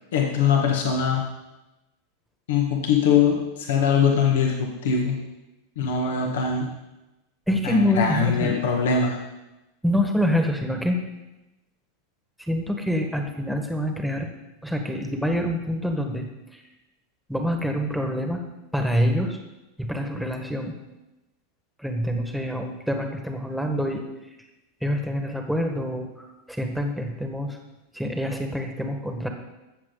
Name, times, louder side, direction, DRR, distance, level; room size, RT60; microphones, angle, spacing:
voice 1, 0.1-1.2 2.5-5.2 5.8-6.7 7.6-9.2, left 6 dB, 70° left, 1 dB, 1.5 m, -22 dB
voice 2, 7.5-8.6 9.8-11.0 12.5-14.3 14.6-16.2 16.5-16.6 17.3-18.4 18.7-19.4 19.8-20.7 21.8-24.0 24.8-27.6 27.9-29.3, equal, ahead, 4 dB, 1.5 m, -26 dB
14.5 x 7.2 x 4.0 m, 1.0 s
hypercardioid pair, 95°, 0 cm